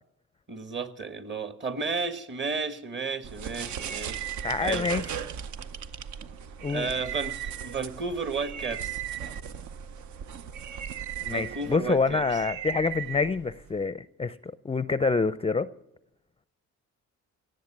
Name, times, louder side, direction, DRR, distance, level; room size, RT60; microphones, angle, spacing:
voice 1, 0.5-4.2 4.6-4.9 6.7-9.0 11.2-12.4, right 4 dB, 40° right, 11 dB, 1.4 m, -33 dB
sound 1, 3.2-13.9, right 9 dB, 70° right, 0.8 m, -37 dB
voice 2, 4.4-5.1 6.6-6.9 11.2-15.7, left 4 dB, 20° left, 15 dB, 0.5 m, -27 dB
17.5 x 7.9 x 9.9 m, 0.84 s
cardioid pair, 90°, 30 cm